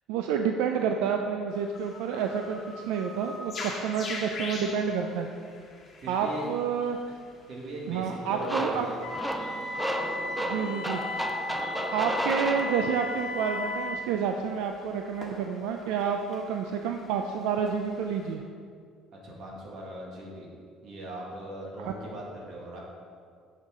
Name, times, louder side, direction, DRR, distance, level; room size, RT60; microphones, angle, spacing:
voice 1, 0.1-2.6 2.9-5.3 6.1-7.0 7.9-8.9 10.4-11.0 11.9-18.4 21.9-22.0, right 6 dB, 90° right, 4 dB, 0.4 m, -29 dB
sound 1, 1.5-18.3, left 2 dB, 30° left, 1.3 m, -45 dB
voice 2, 6.0-6.5 7.5-9.0 19.2-20.5 20.8-22.8, right 1 dB, 55° right, -3 dB, 2.0 m, -39 dB
sound 2, 8.4-13.2, right 1 dB, 5° right, 0.4 m, -33 dB
Wind instrument woodwind instrument, 9.0-14.0, left 2 dB, 75° left, 1.0 m, -35 dB
9.2 x 5.7 x 3.7 m, 2.1 s
cardioid pair, 135°, 0 cm